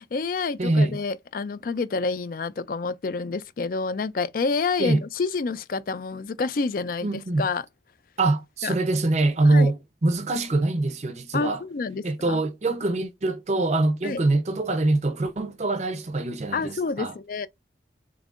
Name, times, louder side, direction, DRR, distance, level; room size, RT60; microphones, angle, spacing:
voice 1, 0.0-7.6 8.6-8.7 9.5-9.7 11.3-12.4 14.0-14.2 16.5-17.5, left 4 dB, 50° left, 0.4 m, -28 dB
voice 2, 0.6-1.0 4.8-5.0 7.0-7.5 8.2-11.6 12.0-17.1, right 2 dB, 40° right, 0.6 m, -24 dB
3.8 x 3.7 x 2.4 m
head